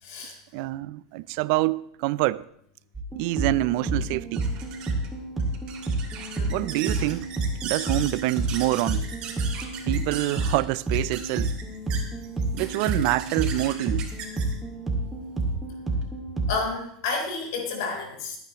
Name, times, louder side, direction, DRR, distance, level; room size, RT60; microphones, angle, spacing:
voice 1, 0.0-0.4 6.3-6.7 16.5-18.4, left 4 dB, 75° left, 3.8 m, -31 dB
voice 2, 0.5-2.4 3.2-4.4 6.5-7.3 7.6-9.1 9.8-11.6 12.5-14.1, right 19 dB, 65° right, 0.5 m, -26 dB
sound 1, 2.9-16.5, right 2 dB, 15° right, 2.2 m, -30 dB
sound 2, 3.2-16.1, right 7 dB, 50° right, 2.9 m, -39 dB
22.0 x 9.2 x 3.1 m
supercardioid pair, 115°, 2 cm